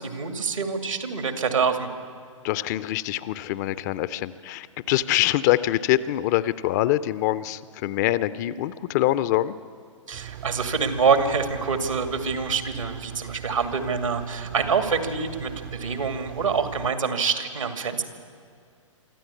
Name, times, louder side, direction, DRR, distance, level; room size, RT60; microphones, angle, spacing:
voice 1, 0.0-1.9 10.1-18.0, right 5 dB, 75° right, 8 dB, 2.2 m, -26 dB
voice 2, 2.4-9.6, left 14 dB, 35° left, 16 dB, 0.6 m, -24 dB
Engine, 10.1-16.9, right 11 dB, 40° right, 0.7 m, -40 dB
24.5 x 14.0 x 8.4 m, 2.3 s
figure-of-eight pair, 120°, 17 cm